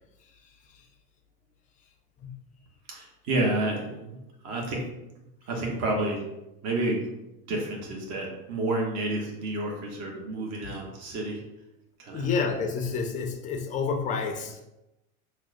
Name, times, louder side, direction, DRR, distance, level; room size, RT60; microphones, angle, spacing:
voice 1, 2.9-4.2 4.4-4.9 5.5-6.3 6.6-7.1 7.5-11.4 12.0-12.3, right 2 dB, 35° right, -1 dB, 0.9 m, -30 dB
voice 2, 12.1-14.6, left 5 dB, 20° left, 3 dB, 0.4 m, -29 dB
6.0 x 2.1 x 2.5 m, 0.92 s
hypercardioid pair, 110°, 44 cm